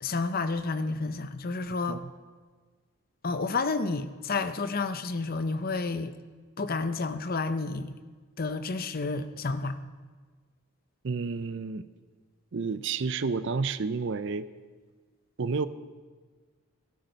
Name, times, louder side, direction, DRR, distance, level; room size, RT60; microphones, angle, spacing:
voice 1, 0.0-2.0 3.2-6.1 6.6-8.0 8.4-9.8, left 3 dB, 40° left, 11 dB, 0.6 m, -30 dB
voice 2, 11.0-11.8 12.5-14.5 15.4-15.7, right 4 dB, 55° right, 14 dB, 0.5 m, -30 dB
13.0 x 12.0 x 5.2 m, 1.5 s
head